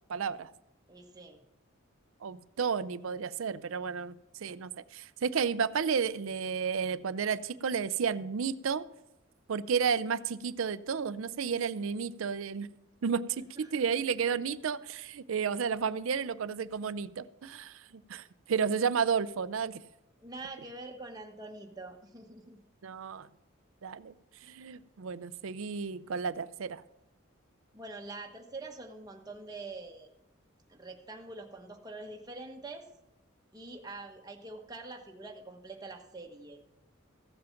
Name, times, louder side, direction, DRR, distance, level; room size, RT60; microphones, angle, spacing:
voice 1, 0.1-0.5 2.2-8.9 9.5-12.7 13.0-19.8 22.8-23.3 23.8-24.1 24.4-26.8, right 6 dB, 80° right, 16 dB, 0.5 m, -32 dB
voice 2, 0.9-1.4 13.6-13.8 20.2-22.6 27.7-30.1 30.7-32.9 33.5-36.6, right 2 dB, 20° right, 2 dB, 1.1 m, -45 dB
15.0 x 7.7 x 5.8 m, 0.89 s
head